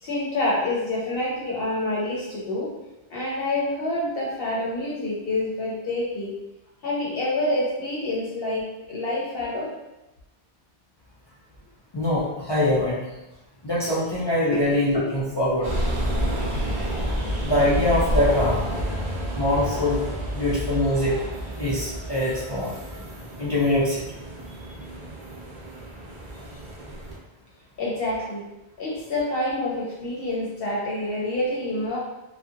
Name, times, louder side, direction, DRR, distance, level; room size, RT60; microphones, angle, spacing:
voice 1, 0.0-2.7 3.1-6.3 6.8-9.7 14.5-14.6 27.8-28.5 28.8-32.0, left 1 dB, 65° left, -5 dB, 0.8 m, -27 dB
voice 2, 11.9-13.0 13.6-15.7 17.4-18.6 19.3-20.0 20.3-21.2 21.6-22.8 23.4-24.0, left 1 dB, 40° left, -8 dB, 0.3 m, -23 dB
sound 1, 15.6-27.2, equal, 50° right, 0.6 m, -29 dB
2.7 x 2.1 x 2.4 m, 0.98 s
omnidirectional pair, 1.1 m